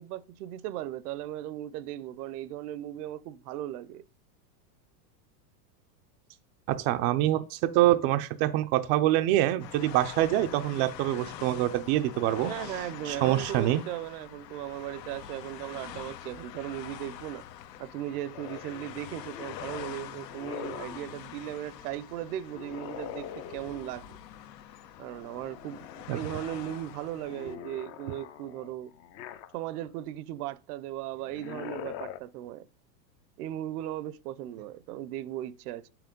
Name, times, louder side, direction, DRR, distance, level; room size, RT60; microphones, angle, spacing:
voice 1, 0.0-4.0 12.5-17.4 17.8-24.2 25.0-28.9 29.5-32.7 33.4-35.9, right 13 dB, 65° right, 0.7 m, -37 dB
voice 2, 6.7-12.5 13.1-13.8 26.1-26.2, right 14 dB, 35° right, 0.4 m, -25 dB
sound 1, 9.6-27.6, left 10 dB, 85° left, 1.0 m, -45 dB
sound 2, 18.3-21.2 22.5-24.1 25.0-26.0 26.4-29.9 31.2-32.2, left 10 dB, 30° left, 0.4 m, -43 dB
6.7 x 6.0 x 5.2 m
supercardioid pair, 130°, 49 cm